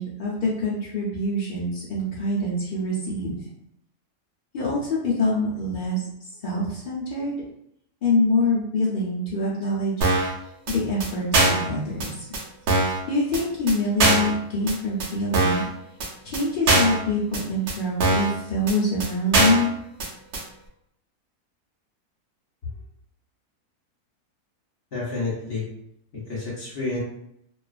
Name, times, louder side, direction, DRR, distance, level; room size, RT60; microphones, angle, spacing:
voice 1, 0.0-3.4 4.5-6.0 6.4-7.4 8.0-10.1 10.7-12.3 13.1-15.7 16.2-19.7, left 1 dB, 80° left, -6 dB, 0.4 m, -25 dB
sound 1, 10.0-10.3 10.7-10.8 11.0-11.1 11.3-11.7 12.0-12.1 12.3-12.4 12.7-13.0 13.3-13.4 13.7-13.8 14.0-14.3 14.7-14.8 15.0-15.1 15.3-15.7 16.0-16.1 16.3-16.4 16.7-17.0 17.3-17.4 17.7-17.8 18.0-18.3 18.7-18.8 19.0-19.1 19.3-19.7 20.0-20.1 20.3-20.4, right 2 dB, 60° right, 0.8 m, -21 dB
voice 2, 24.9-25.7 26.1-27.0, left 3 dB, 50° left, -6 dB, 0.8 m, -29 dB
2.4 x 2.4 x 2.3 m, 0.73 s
omnidirectional pair, 1.7 m